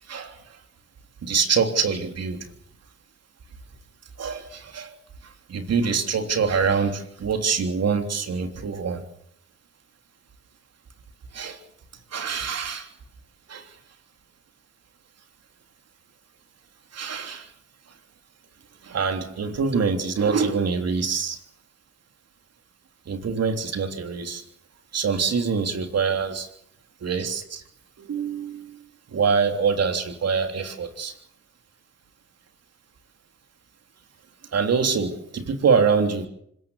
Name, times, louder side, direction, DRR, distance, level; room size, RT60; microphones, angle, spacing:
voice 1, 0.1-0.6 1.2-2.5 4.2-4.9 5.2-9.0 11.3-11.6 12.1-12.9 13.5-13.8 16.9-17.5 18.8-21.4 23.0-24.4 24.9-26.5 27.0-27.6 28.0-31.1 34.5-36.3, right 5 dB, 55° right, 6 dB, 3.4 m, -25 dB
25.5 x 15.5 x 8.2 m, 0.72 s
supercardioid pair, 55°, 30 cm